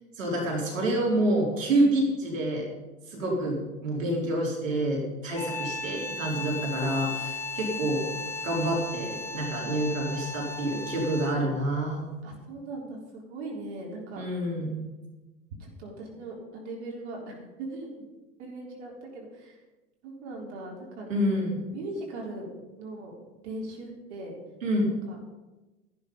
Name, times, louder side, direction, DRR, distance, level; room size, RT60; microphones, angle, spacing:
voice 1, 0.2-2.7 3.1-3.6 3.8-8.1 8.4-12.0 14.1-14.8 21.1-21.6 24.6-24.9, right 1 dB, 70° right, -2 dB, 4.0 m, -27 dB
sound 1, 5.3-11.5, left 3 dB, 5° left, 1.1 m, -36 dB
voice 2, 12.2-14.2 15.6-18.1 18.4-19.6 20.0-21.1 21.7-22.5 22.8-23.1 23.4-24.4 24.9-25.2, right 2 dB, 55° right, -2 dB, 4.1 m, -39 dB
14.5 x 11.5 x 5.3 m, 1.1 s
figure-of-eight pair, 85°, 40 cm